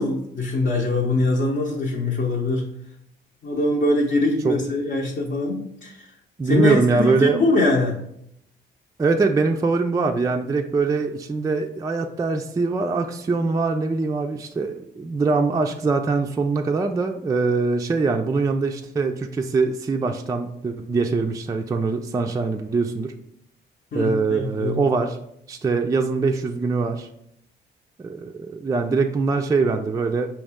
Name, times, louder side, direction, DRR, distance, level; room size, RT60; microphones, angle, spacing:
voice 1, 0.0-2.7 3.4-6.1 6.4-7.9 23.9-24.8, left 2 dB, 45° left, -2 dB, 0.8 m, -23 dB
voice 2, 6.4-7.4 9.0-23.1 23.9-25.2 25.5-27.1 28.0-30.3, right 4 dB, 15° right, 4 dB, 0.3 m, -23 dB
5.3 x 2.9 x 3.5 m, 0.75 s
cardioid pair, 90°, 20 cm